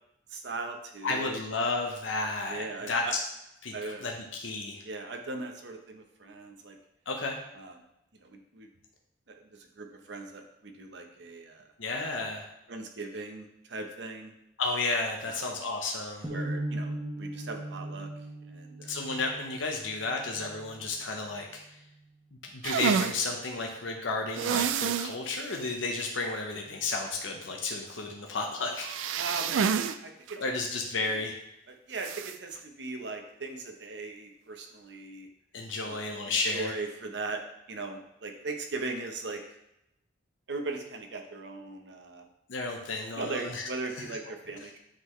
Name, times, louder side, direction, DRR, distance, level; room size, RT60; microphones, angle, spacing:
voice 1, 0.3-1.4 2.5-2.9 3.7-4.0 4.8-6.8 7.5-7.7 8.2-8.7 9.3-9.4 9.8-11.7 12.7-14.3 15.2-15.5 16.3-18.1 18.5-19.0 29.2-30.5 31.7-35.3 35.8-37.4 37.7-39.4 40.5-42.2 43.2-44.8, right 3 dB, 65° right, 3 dB, 0.8 m, -39 dB
voice 2, 1.0-3.2 3.6-3.7 4.0-4.8 7.1-7.4 11.8-12.5 14.6-16.3 18.9-21.8 22.5-29.2 30.4-31.3 35.5-36.8 42.5-44.0, left 3 dB, 90° left, 1 dB, 0.8 m, -32 dB
sound 1, 16.2-22.3, right 1 dB, 20° right, 1.0 m, -39 dB
sound 2, 22.6-23.2 24.4-25.1 25.5-25.6 26.0-26.1 28.8-30.0 30.3-30.4 32.0-32.3, right 7 dB, 90° right, 0.3 m, -28 dB
8.5 x 3.9 x 3.1 m, 0.85 s
head